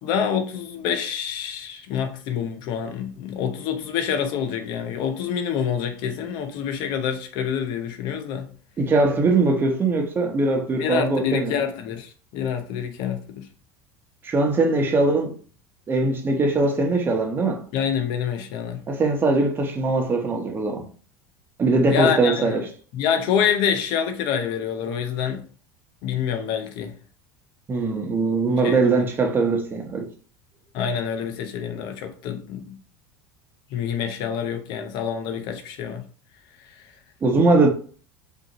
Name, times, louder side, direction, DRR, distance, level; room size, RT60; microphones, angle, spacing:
voice 1, 0.0-8.5 10.8-13.5 17.7-18.8 21.9-22.6 22.9-25.4 26.0-26.9 28.6-28.9 30.7-32.8 33.7-36.0, left 7 dB, 60° left, 0.7 m, -26 dB
voice 2, 8.8-11.5 14.2-15.4 15.9-17.6 18.9-20.9 21.6-22.7 27.7-30.1 37.2-37.7, right 3 dB, 25° right, 1.0 m, -21 dB
5.1 x 2.8 x 3.0 m
supercardioid pair, 125°, 8 cm